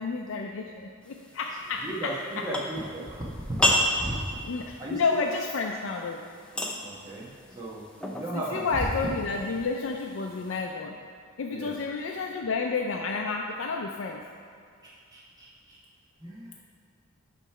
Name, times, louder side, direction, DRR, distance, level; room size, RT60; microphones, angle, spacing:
voice 1, 0.0-2.2 4.5-6.2 8.3-11.0 11.4-14.2, left 4 dB, 65° left, 1 dB, 0.4 m, -30 dB
sound 1, 1.0-10.6, equal, 5° left, 0.5 m, -33 dB
voice 2, 1.8-3.6 4.0-4.1 4.8-5.2 6.8-7.8 8.1-9.1 11.5-11.7 14.8-15.8 16.2-16.6, right 1 dB, 20° right, -6 dB, 1.1 m, -36 dB
9.1 x 3.1 x 5.6 m, 2.3 s
head